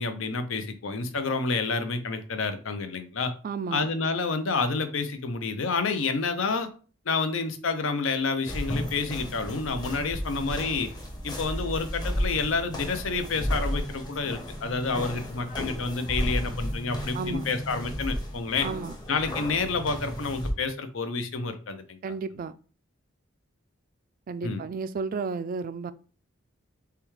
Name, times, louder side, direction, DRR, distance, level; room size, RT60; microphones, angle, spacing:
voice 1, 0.0-3.3 3.7-6.7 7.1-10.9 11.2-18.7 19.1-22.0 24.4-24.6, left 4 dB, 70° left, 0.6 m, -29 dB
voice 2, 3.4-3.9 17.1-17.5 18.6-19.0 22.0-22.5 24.3-25.9, right 5 dB, 45° right, 0.3 m, -32 dB
sound 1, 8.5-20.5, equal, 20° left, 0.8 m, -33 dB
6.7 x 2.3 x 3.1 m
head